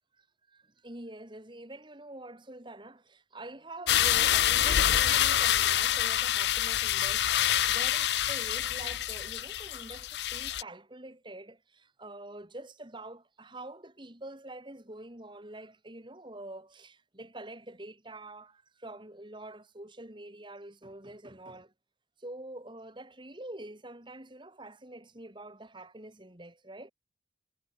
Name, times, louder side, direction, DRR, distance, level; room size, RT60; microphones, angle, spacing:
voice 1, 0.5-21.7 22.2-26.9, right 1 dB, 25° right, 2.6 m, -46 dB
sound 1, 3.9-10.6, left 11 dB, 65° left, 0.5 m, -26 dB
head